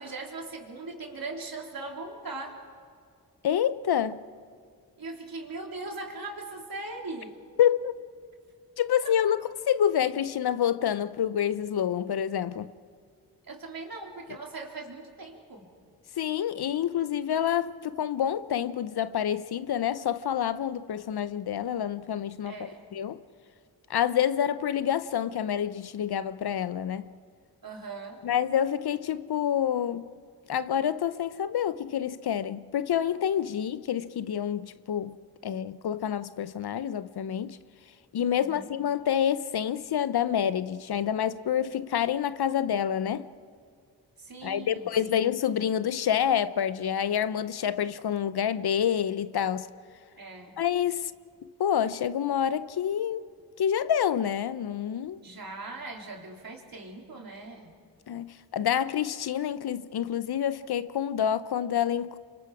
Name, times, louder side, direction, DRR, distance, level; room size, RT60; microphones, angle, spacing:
voice 1, 0.0-2.6 5.0-7.3 9.0-9.1 13.4-15.7 22.4-22.9 27.6-28.2 38.4-38.6 44.2-45.2 50.2-50.6 55.2-57.7, right 3 dB, 55° right, 3.7 m, -40 dB
voice 2, 3.4-4.2 7.6-7.9 8.8-9.4 9.7-12.7 16.2-23.2 23.9-27.1 28.2-30.1 30.5-35.2 35.4-37.6 38.1-43.3 44.4-49.7 50.6-51.1 51.6-53.3 53.6-55.2 58.1-62.2, left 9 dB, 65° left, 0.8 m, -28 dB
27.0 x 24.0 x 4.9 m
supercardioid pair, 40°, 41 cm